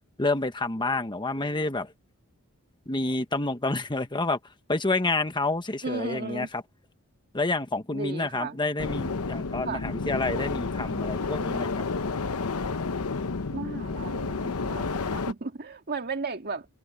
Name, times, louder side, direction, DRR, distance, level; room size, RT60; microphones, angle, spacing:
voice 1, 0.2-1.9 2.9-4.4 4.7-6.6 7.3-11.8, left 2 dB, 20° left, 1.2 m, -28 dB
voice 2, 5.8-6.5 7.9-8.6 9.6-9.8 13.5-16.7, right 4 dB, 45° right, 2.0 m, -35 dB
sound 1, 8.8-15.3, left 4 dB, 75° left, 0.9 m, -30 dB
head